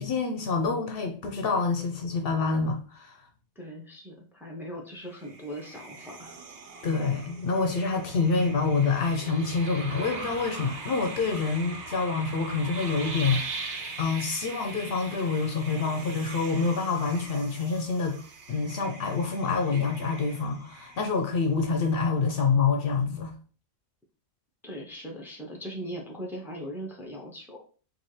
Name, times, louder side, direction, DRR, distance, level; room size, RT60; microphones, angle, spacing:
voice 1, 0.0-3.2 6.8-13.4 14.0-18.2 18.5-23.3, left 4 dB, 65° left, 0.8 m, -27 dB
voice 2, 3.5-6.4 24.6-27.6, equal, ahead, 0.8 m, -39 dB
sound 1, 5.1-21.4, right 3 dB, 90° right, 1.1 m, -41 dB
4.1 x 2.6 x 3.1 m
omnidirectional pair, 1.1 m